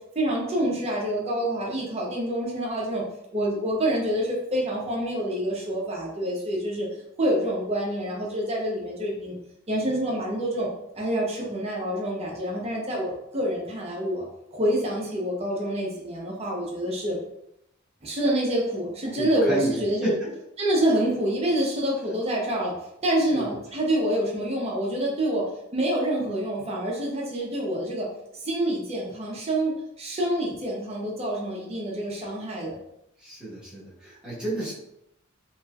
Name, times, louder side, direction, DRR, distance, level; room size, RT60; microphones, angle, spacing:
voice 1, 0.1-3.0 3.3-6.9 7.2-9.3 9.7-10.7 10.9-14.2 14.5-17.2 18.0-20.1 20.6-22.7 23.0-25.4 25.7-28.1 28.4-32.8, right 1 dB, 30° right, -2 dB, 0.7 m, -27 dB
voice 2, 19.0-20.3 23.2-23.6 33.2-34.7, right 1 dB, 5° right, -9 dB, 1.2 m, -32 dB
3.0 x 3.0 x 2.3 m, 0.80 s
head